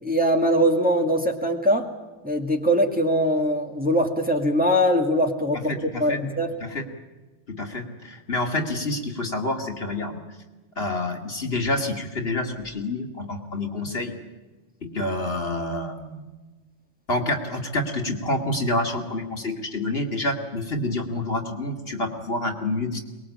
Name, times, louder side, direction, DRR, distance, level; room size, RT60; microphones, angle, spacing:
voice 1, 0.0-1.9 2.2-5.7 6.0-6.5, equal, 5° right, 3 dB, 2.1 m, -22 dB
voice 2, 5.7-6.2 6.6-6.9 7.5-10.2 10.8-14.1 14.8-16.2 17.1-23.0, left 2 dB, 55° left, 3 dB, 2.7 m, -28 dB
23.5 x 21.0 x 8.6 m, 1.2 s
omnidirectional pair, 1.3 m